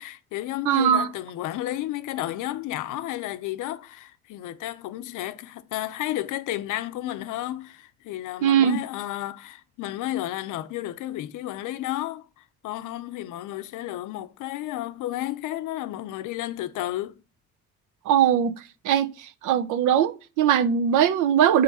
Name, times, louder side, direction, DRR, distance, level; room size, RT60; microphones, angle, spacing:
voice 1, 0.0-17.2, left 14 dB, 90° left, 0.6 m, -32 dB
voice 2, 0.7-1.1 8.4-8.8 18.1-18.5 18.8-19.1 19.4-21.6, right 9 dB, 85° right, 0.7 m, -20 dB
7.8 x 3.8 x 5.4 m
cardioid pair, 90°, 30 cm